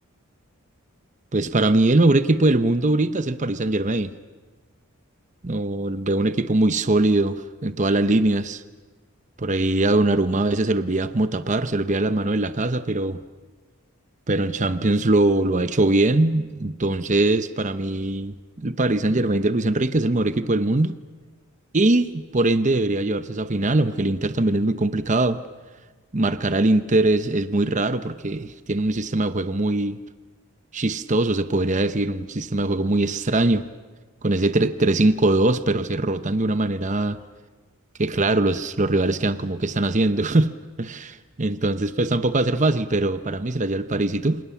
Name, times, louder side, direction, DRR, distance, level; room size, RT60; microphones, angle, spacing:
voice 1, 1.3-4.1 5.4-8.6 9.4-13.2 14.3-21.0 21.7-25.4 26.1-30.0 30.7-33.7 34.2-37.2 38.0-40.5 40.8-44.4, right 2 dB, 35° right, 11 dB, 0.9 m, -21 dB
28.5 x 26.0 x 7.3 m, 1.4 s
head